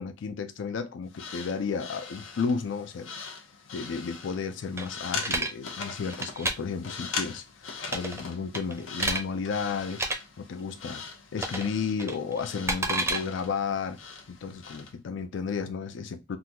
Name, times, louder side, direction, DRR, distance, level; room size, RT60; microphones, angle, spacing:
voice 1, 0.0-3.1 3.7-10.0 10.4-11.0 11.3-14.0 14.3-16.4, left 5 dB, 65° left, 0.4 m, -33 dB
sound 1, 1.1-15.0, left 5 dB, 90° left, 0.8 m, -41 dB
sound 2, 4.8-5.5 6.1-6.5 7.9-8.2 8.5-9.2 9.9-10.2 11.4-11.7 12.0-13.2, right 2 dB, 15° right, 0.5 m, -29 dB
3.8 x 2.3 x 2.8 m
head